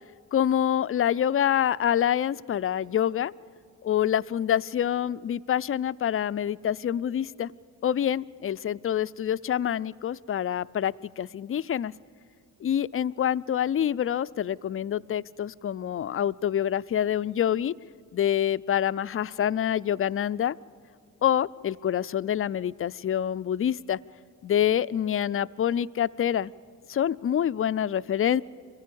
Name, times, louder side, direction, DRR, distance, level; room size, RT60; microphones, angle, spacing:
voice 1, 0.3-3.3 3.8-7.5 7.8-11.9 12.6-17.7 18.1-20.6 21.2-24.0 24.4-26.5 26.9-28.4, left 10 dB, 35° left, 17 dB, 0.5 m, -26 dB
23.0 x 15.5 x 8.6 m, 2.3 s
hypercardioid pair, 45°, 41 cm